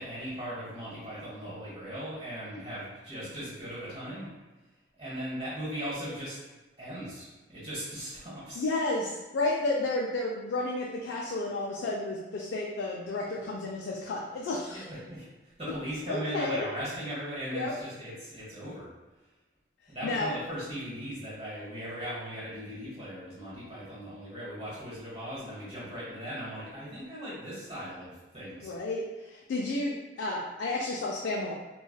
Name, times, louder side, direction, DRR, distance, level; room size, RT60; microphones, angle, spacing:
voice 1, 0.0-4.3 5.0-6.4 6.8-8.6 14.7-15.2 15.6-18.9 19.9-28.7, equal, 30° right, -10 dB, 1.3 m, -38 dB
voice 2, 8.6-14.8 16.1-16.7 17.5-17.7 20.0-20.4 28.6-31.5, left 2 dB, 85° left, -2 dB, 0.3 m, -31 dB
3.2 x 2.2 x 2.2 m, 1.1 s
head